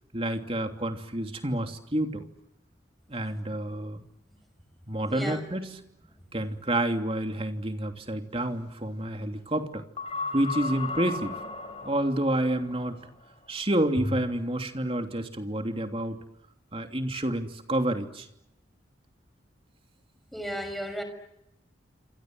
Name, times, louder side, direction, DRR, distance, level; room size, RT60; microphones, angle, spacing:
voice 1, 0.1-2.2 3.1-4.0 4.9-5.8 6.3-9.8 10.3-11.3 11.8-13.0 13.5-16.2 16.7-18.3, right 1 dB, 30° right, 3.0 m, -29 dB
voice 2, 5.1-5.4 20.3-21.0, equal, ahead, 5.8 m, -34 dB
sound 1, 10.0-12.6 14.0-14.2, left 2 dB, 30° left, 5.7 m, -34 dB
27.5 x 27.5 x 7.9 m
head